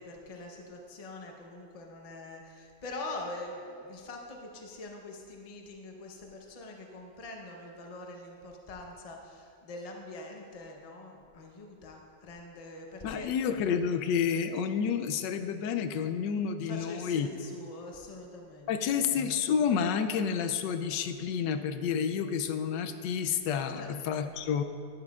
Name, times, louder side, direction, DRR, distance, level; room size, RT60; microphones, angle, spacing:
voice 1, 0.0-13.3 16.6-19.0 23.7-24.2, left 2 dB, 35° left, 1 dB, 0.6 m, -44 dB
voice 2, 13.0-17.3 18.7-24.6, left 7 dB, 90° left, 9 dB, 1.2 m, -30 dB
11.5 x 9.3 x 2.4 m, 2.4 s
omnidirectional pair, 1.9 m